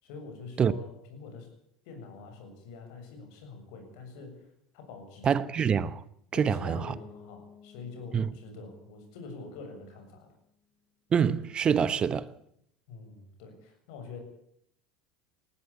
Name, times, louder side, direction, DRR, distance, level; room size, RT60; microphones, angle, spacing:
voice 1, 0.0-1.5 1.8-5.3 6.3-10.3 12.9-14.2, left 4 dB, 65° left, 7.1 m, -45 dB
voice 2, 5.2-6.0 6.4-6.8 8.1-8.3 11.1-12.3, right 7 dB, 35° right, 1.0 m, -25 dB
Bass guitar, 6.7-10.6, left 7 dB, 50° left, 5.1 m, -54 dB
20.0 x 15.5 x 8.6 m
hypercardioid pair, 75°, 3 cm